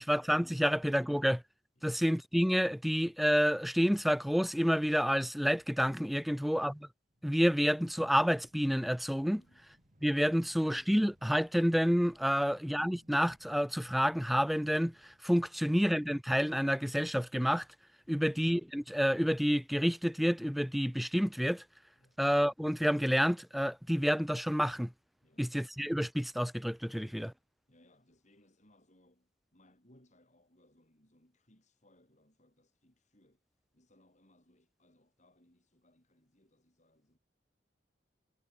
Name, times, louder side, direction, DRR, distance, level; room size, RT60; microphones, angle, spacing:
voice 1, 0.0-1.4 1.8-6.7 7.2-9.4 10.0-14.9 15.2-17.6 18.1-21.6 22.2-24.9 25.4-27.3, equal, ahead, 0.4 m, -29 dB
voice 2, 6.2-6.6 9.3-9.6 10.3-10.5 15.5-15.7 18.0-18.3 22.0-22.2 25.2-25.5 26.9-27.2 27.7-37.2, left 1 dB, 40° left, 7.3 m, -67 dB
sound 1, 7.0-15.2, equal, 45° right, 6.1 m, -67 dB
head